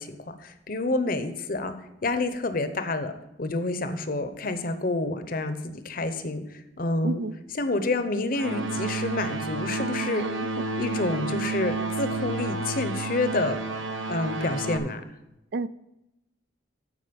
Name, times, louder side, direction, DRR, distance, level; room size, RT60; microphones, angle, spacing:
voice 1, 0.0-1.7 2.0-3.1 3.4-7.2 7.6-10.2 10.8-13.6 14.1-15.0, left 2 dB, 45° left, 9 dB, 0.8 m, -28 dB
voice 2, 7.0-7.4 10.2-10.6 15.5-15.7, right 3 dB, 55° right, 15 dB, 0.4 m, -32 dB
sound 1, 8.3-14.8, right 3 dB, 85° right, 1.0 m, -30 dB
13.0 x 5.2 x 5.3 m, 0.91 s
head